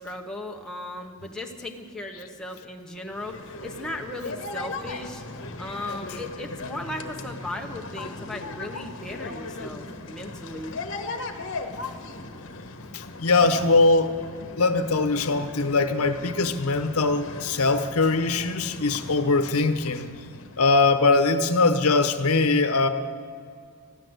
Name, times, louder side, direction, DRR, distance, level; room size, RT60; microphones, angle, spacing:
voice 1, 0.0-5.2 5.6-10.8, left 1 dB, 5° left, 0 dB, 1.0 m, -37 dB
sound 1, 3.1-21.5, left 3 dB, 55° left, 1.2 m, -38 dB
voice 2, 12.9-14.1 14.6-20.1 20.6-22.9, left 3 dB, 75° left, 9 dB, 0.9 m, -21 dB
14.5 x 11.5 x 7.9 m, 2.1 s
head